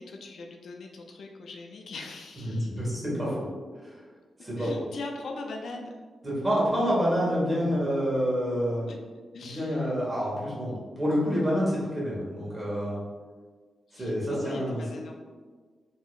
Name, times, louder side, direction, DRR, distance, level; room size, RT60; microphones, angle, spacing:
voice 1, 0.0-2.8 4.6-5.9 8.9-9.0 9.3-10.0 13.9-15.2, left 3 dB, 70° left, 2 dB, 0.4 m, -40 dB
voice 2, 2.4-3.3 3.8-4.0 4.4-4.7 6.2-8.9 9.4-13.0 13.9-14.8, equal, 20° right, -6 dB, 1.2 m, -28 dB
4.7 x 2.8 x 2.4 m, 1.5 s
wide cardioid pair, 160°, 0 cm